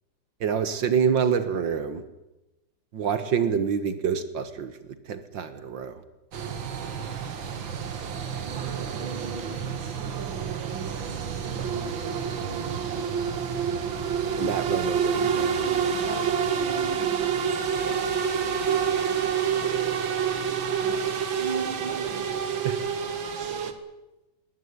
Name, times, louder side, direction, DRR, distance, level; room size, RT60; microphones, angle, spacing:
voice 1, 0.4-2.0 2.9-4.7 5.1-5.9 11.5-11.7 14.4-15.6 17.7-18.0 22.6-22.8, right 7 dB, 75° right, 12 dB, 2.1 m, -27 dB
sound 1, 6.3-23.7, right 7 dB, 90° right, 2.5 m, -28 dB
voice 2, 9.6-10.1 16.0-16.5 18.6-19.8 20.9-22.8, left 2 dB, 35° left, 0 dB, 7.6 m, -47 dB
21.0 x 18.0 x 9.6 m, 0.99 s
omnidirectional pair, 2.1 m